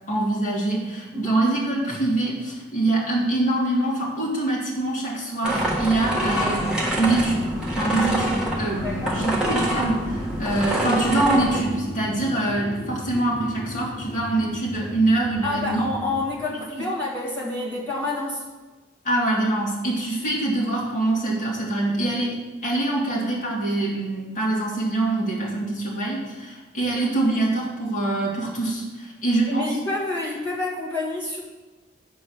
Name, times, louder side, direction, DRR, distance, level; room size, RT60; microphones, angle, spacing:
voice 1, 0.1-6.7 7.0-15.8 16.5-16.9 19.0-29.8, right 2 dB, 40° left, -5 dB, 2.0 m, -24 dB
sound 1, 5.4-11.6, right 1 dB, 5° right, 1.4 m, -26 dB
sound 2, 6.8-16.3, equal, 60° left, 2.4 m, -35 dB
voice 2, 8.8-9.2 15.4-18.4 29.5-31.4, left 2 dB, 10° left, -7 dB, 1.9 m, -28 dB
9.0 x 4.3 x 6.3 m, 1.2 s
head